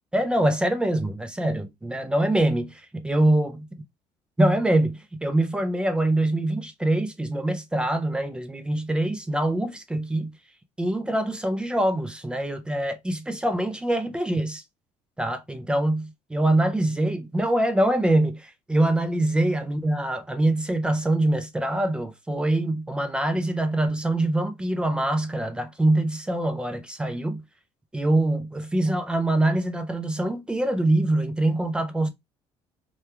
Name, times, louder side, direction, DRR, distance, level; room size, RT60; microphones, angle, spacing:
voice 1, 0.1-3.6 4.4-10.3 10.8-14.6 15.2-27.4 27.9-32.1, right 1 dB, 10° right, 0.3 m, -24 dB
2.9 x 2.2 x 2.2 m
cardioid pair, 150°, 12 cm